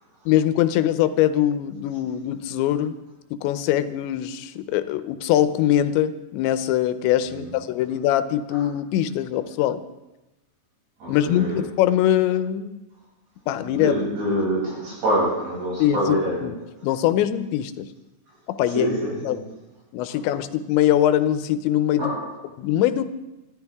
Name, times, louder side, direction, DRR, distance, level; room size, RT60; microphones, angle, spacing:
voice 1, 0.3-2.9 3.3-9.8 11.1-12.8 13.5-14.0 15.8-16.2 16.4-16.5 16.8-17.9 18.5-19.0 19.3-19.4 19.9-22.1 22.6-23.1, left 11 dB, 90° left, 12 dB, 3.1 m, -22 dB
voice 2, 11.0-11.6 13.6-16.6 18.6-19.5 20.1-20.2 22.0-22.4, equal, 65° right, -5 dB, 9.0 m, -26 dB
25.5 x 14.0 x 3.6 m, 0.97 s
omnidirectional pair, 5.0 m